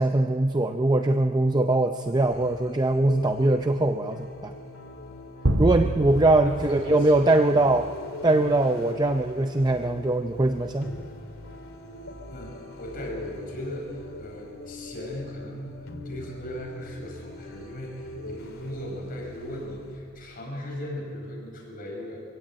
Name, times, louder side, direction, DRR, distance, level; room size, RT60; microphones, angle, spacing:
voice 1, 0.0-4.5 5.6-7.8 8.2-11.0, right 2 dB, 20° right, 6 dB, 0.6 m, -22 dB
sound 1, 2.0-20.0, left 1 dB, 85° left, 2.5 m, -42 dB
sound 2, 5.4-8.0, right 1 dB, 80° right, 1.9 m, -28 dB
voice 2, 6.4-7.8 12.3-22.2, equal, 45° left, -1 dB, 5.2 m, -37 dB
24.5 x 16.5 x 8.5 m, 2.3 s
head